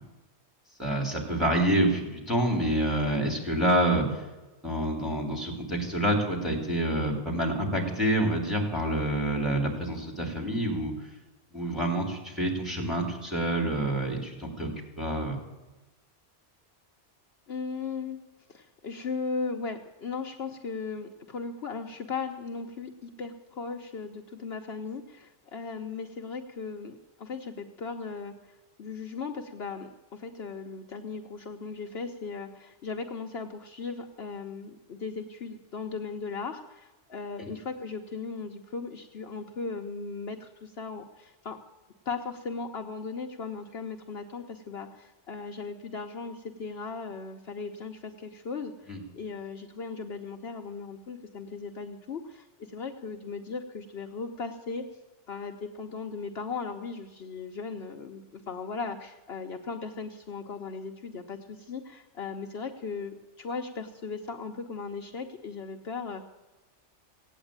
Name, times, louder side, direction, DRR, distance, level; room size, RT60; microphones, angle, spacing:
voice 1, 0.8-4.2 4.6-10.9 11.5-14.7 15.0-15.4 37.4-37.5 48.9-49.0, right 1 dB, ahead, 0 dB, 3.4 m, -27 dB
voice 2, 17.5-18.2 18.5-41.6 42.0-54.8 55.3-66.2, left 4 dB, 60° left, 3 dB, 1.1 m, -37 dB
17.0 x 8.9 x 8.8 m, 1.1 s
omnidirectional pair, 1.2 m